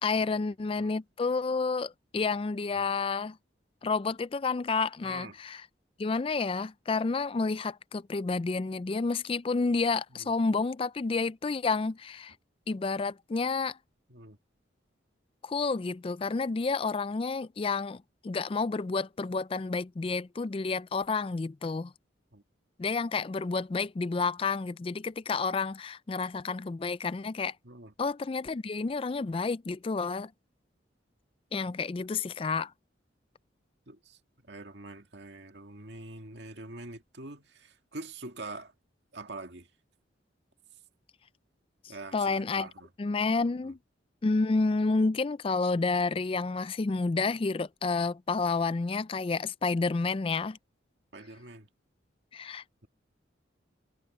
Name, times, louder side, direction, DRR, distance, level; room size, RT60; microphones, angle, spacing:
voice 1, 0.0-3.4 3.8-5.6 6.0-12.3 12.7-13.8 15.4-21.9 22.8-27.5 28.0-30.3 31.5-32.7 42.1-42.7 43.0-43.8 44.2-50.6 52.3-52.9, left 4 dB, 30° left, 0.3 m, -30 dB
voice 2, 5.0-5.4 10.1-10.3 14.1-14.4 22.3-22.4 27.6-27.9 33.9-38.7 39.1-39.7 41.9-42.9 43.6-43.7 51.1-51.7, right 2 dB, 65° right, 2.1 m, -45 dB
head